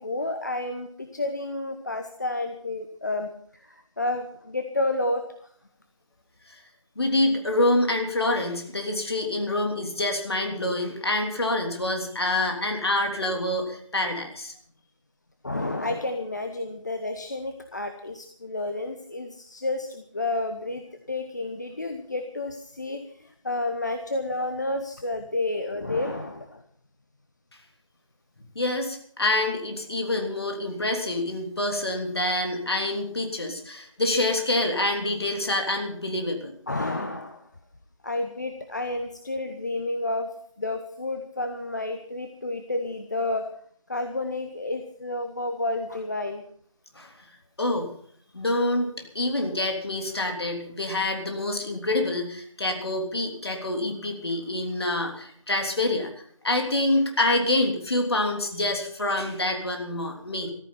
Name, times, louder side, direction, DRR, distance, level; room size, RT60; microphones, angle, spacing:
voice 1, 0.0-5.5 15.4-26.6 33.5-33.6 36.7-37.5 38.0-43.5 43.9-46.4, left 2 dB, 35° left, 7 dB, 1.0 m, -30 dB
voice 2, 6.9-14.5 28.5-36.5 46.9-47.1 47.6-47.9 48.3-56.1 56.4-60.5, left 1 dB, 50° left, 3 dB, 3.2 m, -26 dB
14.0 x 14.0 x 5.6 m, 0.62 s
figure-of-eight pair, 170°, 17 cm